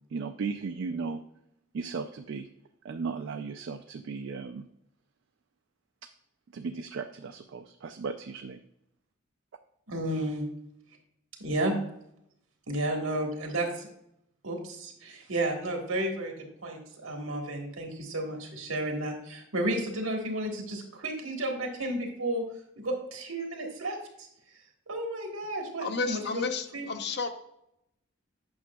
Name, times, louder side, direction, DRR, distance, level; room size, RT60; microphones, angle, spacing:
voice 1, 0.1-1.2 1.7-2.5 2.8-4.7 6.5-8.6, right 4 dB, 65° right, 7 dB, 0.3 m, -36 dB
voice 2, 9.9-10.4 11.4-11.7 12.7-13.9 14.4-22.4 22.8-24.3 24.9-26.4 26.7-26.8, right 1 dB, 85° right, 2 dB, 1.5 m, -32 dB
voice 3, 25.8-27.3, left 4 dB, 50° left, 8 dB, 0.6 m, -32 dB
8.7 x 6.0 x 2.3 m, 0.78 s
head